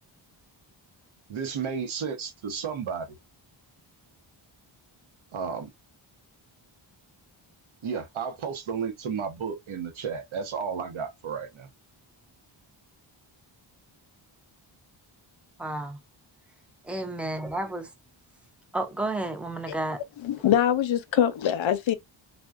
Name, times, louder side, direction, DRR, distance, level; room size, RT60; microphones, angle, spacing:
voice 1, 1.3-3.1 5.3-5.7 7.8-11.7, right 6 dB, 75° right, 0.8 m, -32 dB
voice 2, 15.6-16.0 16.8-17.9 18.7-20.0, right 2 dB, 5° right, 0.4 m, -31 dB
voice 3, 20.2-21.9, left 10 dB, 70° left, 0.6 m, -23 dB
3.5 x 2.2 x 2.3 m
wide cardioid pair, 130°, 49 cm